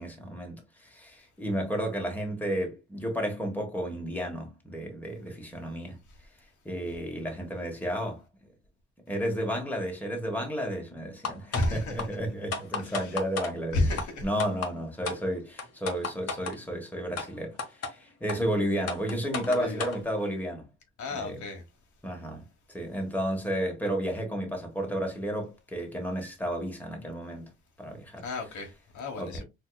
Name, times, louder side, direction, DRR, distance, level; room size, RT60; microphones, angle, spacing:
voice 1, 0.0-6.0 6.6-8.2 9.1-13.8 14.2-20.7 21.1-21.5 22.0-22.4 22.7-27.5 27.8-28.3 29.2-29.4, equal, 5° left, 1.2 m, -32 dB
sound 1, 11.2-11.7 12.0-12.1 12.5-13.5 14.0-14.1 14.4-14.7 15.0-15.2 15.6-16.6 17.2-17.3 17.6-17.9 18.3-18.4 18.9-20.0, left 4 dB, 55° left, 1.0 m, -32 dB
voice 2, 11.5-12.2 12.8-13.2 13.7-14.2 19.4-19.9 21.0-21.6 28.2-29.4, left 2 dB, 75° left, 1.3 m, -32 dB
4.4 x 2.8 x 2.2 m
cardioid pair, 90°, 30 cm